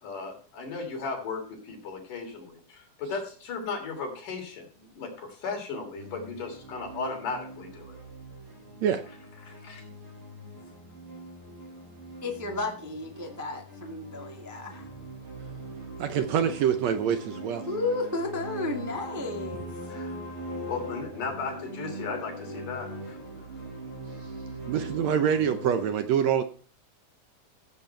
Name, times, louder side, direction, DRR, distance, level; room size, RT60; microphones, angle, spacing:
voice 1, 0.0-8.0 9.4-9.9 19.8-20.1 20.6-23.2, left 4 dB, 80° left, 2 dB, 4.7 m, -36 dB
sound 1, 6.0-25.9, right 1 dB, 90° right, 8.5 m, -41 dB
voice 2, 12.2-14.9 17.7-19.7, left 2 dB, 10° right, 1 dB, 1.0 m, -33 dB
voice 3, 16.0-17.7 24.6-26.4, right 8 dB, 70° right, 9 dB, 1.8 m, -25 dB
15.5 x 8.3 x 4.5 m, 0.41 s
omnidirectional pair, 3.7 m